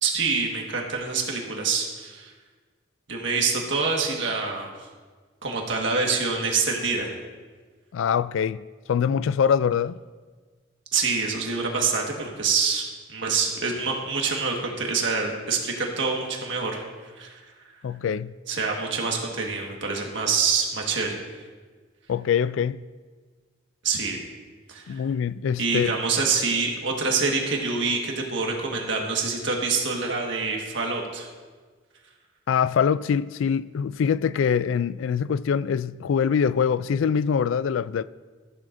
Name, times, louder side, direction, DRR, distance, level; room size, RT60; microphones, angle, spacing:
voice 1, 0.0-2.3 3.1-4.7 5.4-7.1 10.9-16.8 17.2-17.4 18.5-21.1 23.8-24.2 24.7-25.0 25.6-31.3, right 4 dB, 65° right, 1.6 m, -26 dB
voice 2, 7.9-8.6 8.9-10.0 17.8-18.3 22.1-22.8 24.9-25.9 32.5-38.0, left 7 dB, 75° left, 0.3 m, -24 dB
14.0 x 11.5 x 2.6 m
head